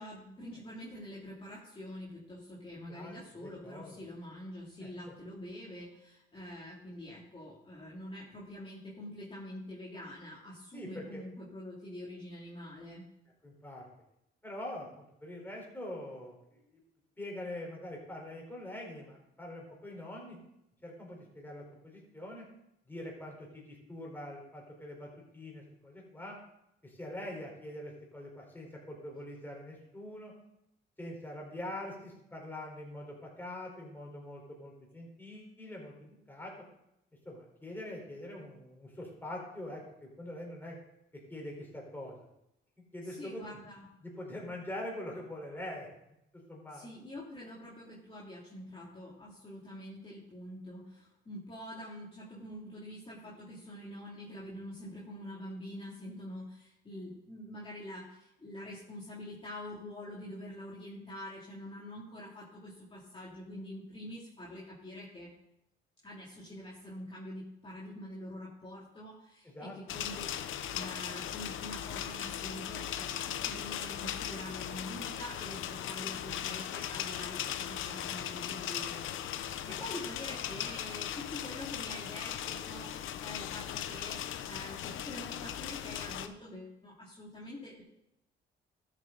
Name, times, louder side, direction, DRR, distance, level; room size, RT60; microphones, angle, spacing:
voice 1, 0.0-13.1 43.0-43.9 46.7-65.3 66.0-87.8, left 1 dB, 25° left, -6 dB, 2.7 m, -46 dB
voice 2, 2.7-4.0 4.8-5.1 10.7-11.2 13.4-13.9 14.4-16.8 17.2-20.4 20.8-22.4 22.9-26.4 26.8-30.3 31.0-36.5 37.2-40.8 41.3-42.2 42.9-43.6 44.0-45.9 46.3-46.9 69.4-69.7 79.6-79.8, left 1 dB, 10° left, -2 dB, 4.2 m, -44 dB
sound 1, 69.9-86.3, left 10 dB, 80° left, 0.8 m, -38 dB
13.0 x 7.6 x 3.9 m, 0.84 s
cardioid pair, 90°, 20 cm